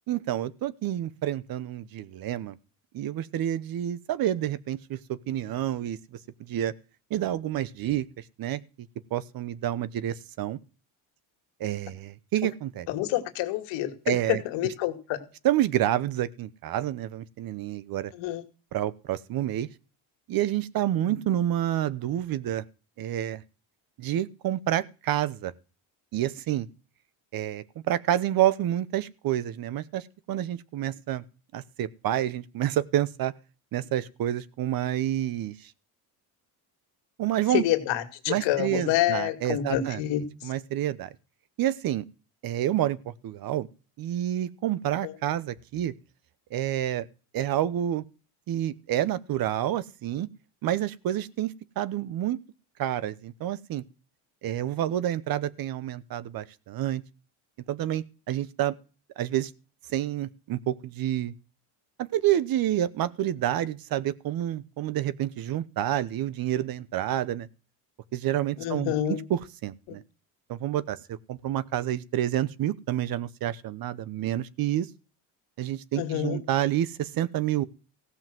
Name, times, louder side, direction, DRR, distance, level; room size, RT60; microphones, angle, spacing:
voice 1, 0.1-2.6 2.9-6.0 6.5-6.7 7.1-8.1 8.4-8.6 9.1-10.6 11.6-12.9 14.1-14.4 15.4-18.1 18.7-19.7 20.3-22.6 23.0-23.4 24.0-25.5 26.1-26.7 27.3-31.2 31.5-33.3 33.7-35.7 37.2-37.6 38.3-40.0 40.4-41.1 41.6-42.0 42.4-43.0 43.2-43.7 44.0-45.9 46.5-47.1 47.3-48.0 48.5-50.3 50.6-52.4 52.8-53.8 54.4-57.0 57.7-58.8 59.2-59.5 59.9-61.3 62.0-67.5 68.1-70.0 70.5-74.9 75.6-77.6, right 12 dB, 55° right, 1.0 m, -28 dB
voice 2, 12.9-15.2 18.2-18.4 21.0-21.1 37.5-40.5 45.0-45.1 68.6-69.2 76.0-76.4, left 13 dB, 80° left, 2.3 m, -28 dB
16.0 x 5.7 x 7.6 m
cardioid pair, 120°, 43 cm